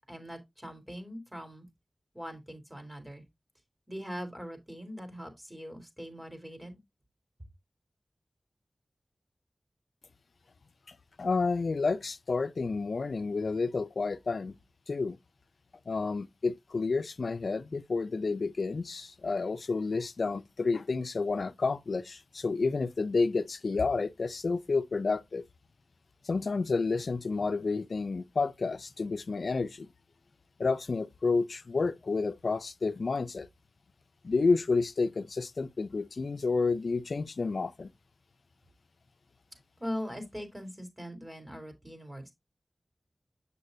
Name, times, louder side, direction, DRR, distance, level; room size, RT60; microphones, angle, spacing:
voice 1, 0.1-1.6 2.1-3.2 3.9-6.8 39.8-42.3, equal, 15° right, 3.4 m, -41 dB
voice 2, 10.9-14.6 14.9-15.2 15.9-25.4 26.2-29.9 30.6-33.5 34.2-37.9, left 4 dB, 80° left, 0.5 m, -30 dB
8.3 x 6.7 x 2.7 m
wide cardioid pair, 50°, 0 cm